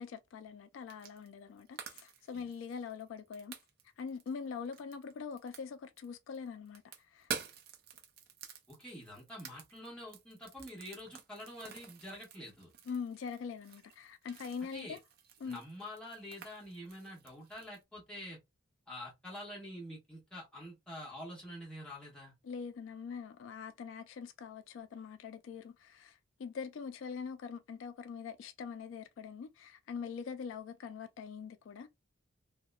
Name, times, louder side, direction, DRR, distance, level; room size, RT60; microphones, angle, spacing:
voice 1, 0.0-3.6 4.0-7.3 12.9-15.0 15.4-15.6 22.4-31.9, left 6 dB, 80° left, 0.3 m, -43 dB
sound 1, 0.9-1.3 1.6-6.1 6.3-17.8, right 7 dB, 50° right, 0.4 m, -49 dB
voice 2, 8.7-12.7 14.7-15.0 15.4-18.4 18.9-22.3, left 1 dB, 5° left, 1.3 m, -47 dB
2.8 x 2.1 x 2.2 m
head